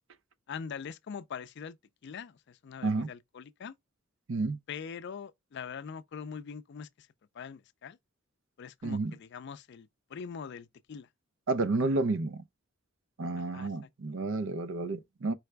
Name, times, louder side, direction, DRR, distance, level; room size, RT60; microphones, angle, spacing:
voice 1, 0.5-1.8 2.0-3.7 4.7-6.9 7.4-8.0 8.6-11.1 13.5-13.7, left 6 dB, 60° left, 0.4 m, -42 dB
voice 2, 8.8-9.2 11.5-12.4 13.2-15.3, right 3 dB, 65° right, 0.6 m, -30 dB
4.7 x 3.4 x 3.2 m
head